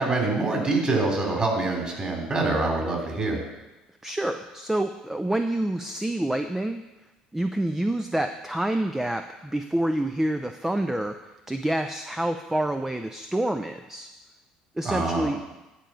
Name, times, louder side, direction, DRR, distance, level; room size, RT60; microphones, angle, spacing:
voice 1, 0.0-3.4 14.8-15.3, right 3 dB, 25° right, 0 dB, 3.3 m, -25 dB
voice 2, 4.0-6.8 7.3-11.2 11.5-14.1 14.8-15.4, right 1 dB, 10° right, 7 dB, 0.6 m, -27 dB
10.0 x 5.0 x 7.0 m, 1.0 s
figure-of-eight pair, 55°, 4 cm